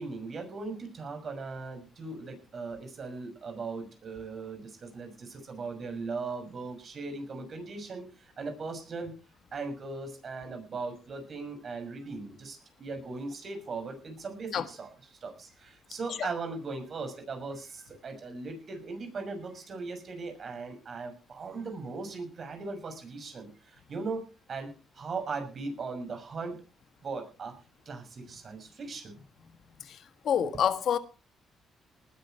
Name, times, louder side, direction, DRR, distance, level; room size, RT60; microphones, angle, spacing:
voice 1, 0.0-9.2 9.5-26.6 27.0-27.6 27.9-29.1, right 4 dB, 50° right, 6.2 m, -39 dB
voice 2, 30.2-31.0, left 8 dB, 65° left, 1.5 m, -26 dB
19.5 x 10.5 x 4.5 m
cardioid pair, 90°, 0 cm